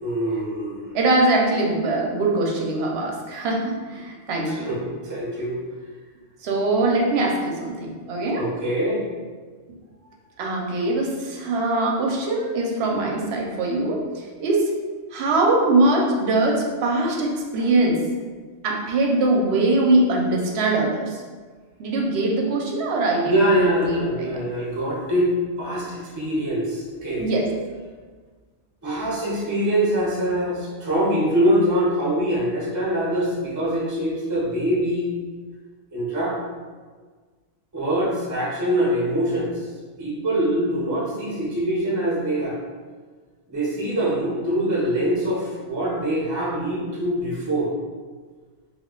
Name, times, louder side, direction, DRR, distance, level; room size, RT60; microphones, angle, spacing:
voice 1, 0.0-0.9 4.5-5.6 8.4-9.0 23.2-25.3 25.6-27.3 28.8-35.1 35.9-36.4 37.7-39.7 40.0-42.6 43.5-47.7, right 1 dB, 25° right, -5 dB, 0.4 m, -24 dB
voice 2, 0.9-4.7 6.4-8.4 10.4-14.7 15.1-18.0 18.6-21.2 21.8-24.4 27.2-27.5, right 2 dB, 65° right, -1 dB, 0.7 m, -22 dB
2.3 x 2.2 x 3.6 m, 1.5 s
omnidirectional pair, 1.3 m